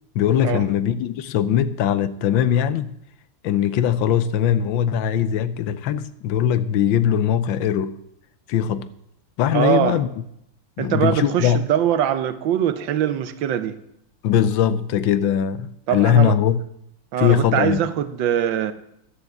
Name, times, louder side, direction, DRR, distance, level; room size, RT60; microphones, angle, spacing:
voice 1, 0.1-2.9 3.4-8.0 8.5-8.9 9.4-10.1 10.8-11.6 14.2-16.6 17.2-17.8, left 9 dB, 80° left, 1.4 m, -20 dB
voice 2, 9.5-10.0 10.8-13.8 15.9-16.4 17.1-18.7, right 10 dB, 75° right, 1.5 m, -22 dB
11.0 x 7.1 x 7.7 m
omnidirectional pair, 2.1 m